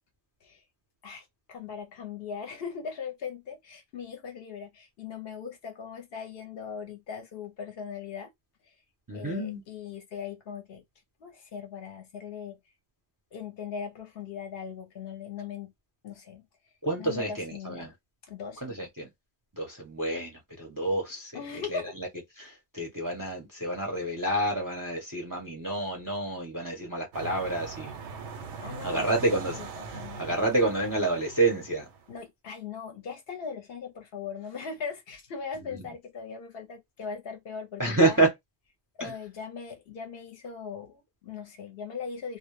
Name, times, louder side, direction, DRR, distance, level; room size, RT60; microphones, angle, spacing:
voice 1, 1.0-8.3 8.6-8.7 9.1-10.8 11.2-12.6 13.3-15.7 16.0-16.4 17.0-17.9 18.2-18.8 21.3-22.0 28.6-29.2 29.5-30.4 32.1-38.2 39.0-42.4, left 6 dB, 65° left, 0.8 m, -39 dB
voice 2, 9.1-9.6 16.8-17.9 18.6-19.1 19.5-21.4 21.7-22.1 22.4-28.0 28.8-29.6 30.2-31.9 37.8-38.3 39.0-39.1, right 2 dB, 25° right, 0.5 m, -28 dB
sound 1, 27.1-32.1, right 5 dB, 90° right, 0.9 m, -41 dB
2.2 x 2.0 x 3.0 m
omnidirectional pair, 1.2 m